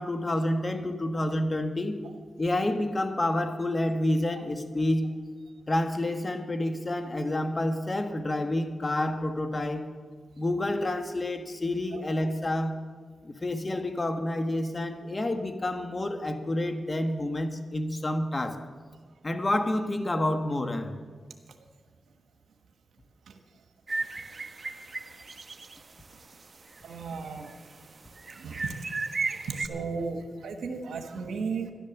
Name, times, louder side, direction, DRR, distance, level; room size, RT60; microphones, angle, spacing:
voice 1, 0.0-2.0 2.4-5.1 5.7-9.9 10.4-12.8 13.2-18.7 19.2-21.0, left 1 dB, 35° left, 1.5 m, -29 dB
sound 1, 23.9-25.8 26.1-26.2 26.7-27.6 28.2-29.7, right 3 dB, 45° right, 0.8 m, -35 dB
voice 2, 26.8-27.5 28.4-28.7 29.3-31.7, right 5 dB, 85° right, 1.2 m, -35 dB
12.0 x 11.0 x 7.1 m
cardioid pair, 55°, 0 cm